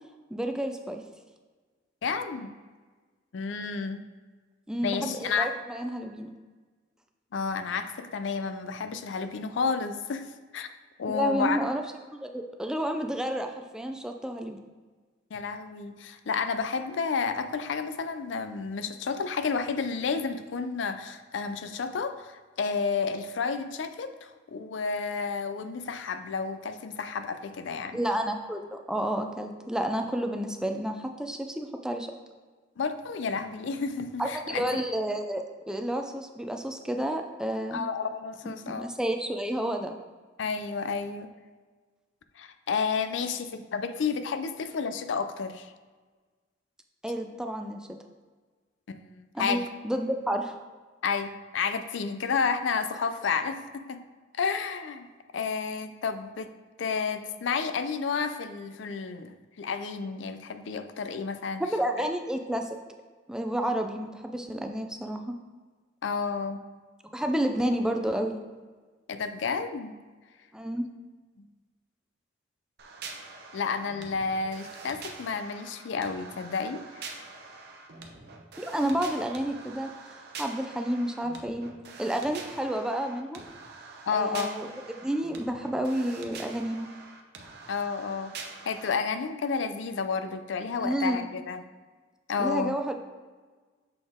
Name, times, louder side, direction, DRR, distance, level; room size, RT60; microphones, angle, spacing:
voice 1, 0.3-1.0 4.7-6.3 11.1-11.8 12.1-14.6 27.9-32.1 34.2-37.9 38.7-40.0 47.0-47.8 49.3-50.5 61.6-62.8 63.3-65.4 67.1-68.4 70.5-70.9 78.6-79.9 80.4-81.7 82.0-83.4 84.1-86.9 90.8-91.3 92.4-92.9, right 1 dB, 5° right, 4 dB, 0.3 m, -30 dB
voice 2, 2.0-2.5 3.3-4.0 4.8-5.5 7.3-10.3 10.5-10.7 11.0-11.6 15.3-28.0 32.8-34.8 37.7-38.9 40.4-41.3 42.4-45.7 48.9-49.7 51.0-54.0 54.4-56.5 56.8-61.6 62.0-62.1 66.0-66.6 69.1-70.0 71.4-71.5 73.5-77.2 84.1-84.6 87.7-88.3 88.6-91.6 92.3-92.7, left 5 dB, 70° left, 9 dB, 0.4 m, -31 dB
sound 1, 72.8-88.9, right 4 dB, 60° right, 0.7 m, -45 dB
6.8 x 4.1 x 3.6 m, 1.4 s
head